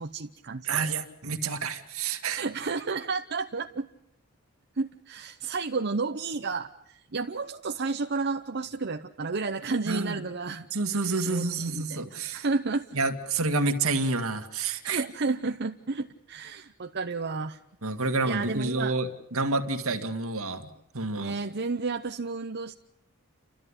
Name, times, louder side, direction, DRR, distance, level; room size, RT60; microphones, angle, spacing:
voice 1, 0.0-0.9 2.3-3.9 4.8-10.7 11.2-12.8 14.8-17.6 18.2-18.9 21.2-22.7, right 4 dB, 50° right, 4 dB, 0.9 m, -32 dB
voice 2, 0.6-2.4 9.9-10.2 10.7-12.5 12.9-15.0 17.8-20.7 20.9-21.3, right 3 dB, 70° right, 6 dB, 2.1 m, -29 dB
29.5 x 13.5 x 9.9 m, 0.83 s
head